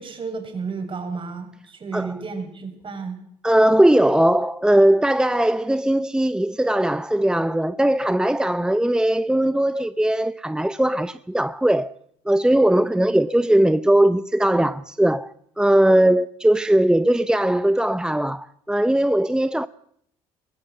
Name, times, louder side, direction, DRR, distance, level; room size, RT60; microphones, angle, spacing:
voice 1, 0.0-3.2, right 4 dB, 45° right, 7.3 m, -32 dB
voice 2, 3.4-11.9 12.3-19.7, right 1 dB, 5° right, 0.8 m, -19 dB
22.5 x 17.5 x 8.0 m
supercardioid pair, 70°, 13 cm